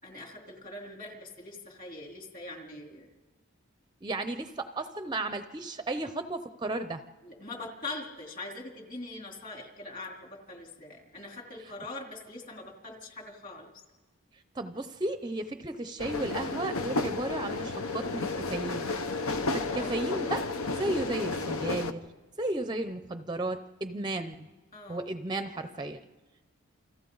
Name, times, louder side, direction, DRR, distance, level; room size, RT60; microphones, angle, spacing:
voice 1, 0.0-3.1 7.2-13.7 19.7-20.0 24.7-25.1, left 2 dB, 40° left, 0 dB, 3.4 m, -42 dB
voice 2, 4.0-7.0 14.5-18.9 19.3-22.1 22.4-24.5 24.9-26.0, right 2 dB, 20° right, 9 dB, 0.6 m, -34 dB
sound 1, 16.0-21.9, left 3 dB, 80° left, 1.0 m, -32 dB
29.0 x 26.5 x 3.9 m, 1.3 s
head